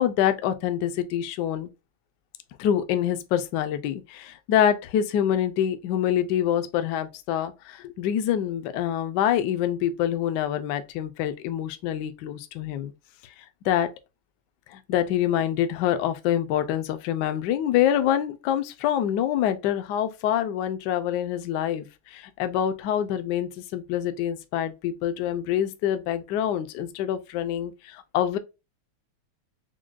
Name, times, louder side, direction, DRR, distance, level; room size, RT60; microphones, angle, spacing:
voice 1, 0.0-1.7 2.6-12.9 13.6-13.9 14.7-28.4, left 10 dB, 75° left, 1.0 m, -26 dB
6.1 x 2.2 x 2.3 m
omnidirectional pair, 2.3 m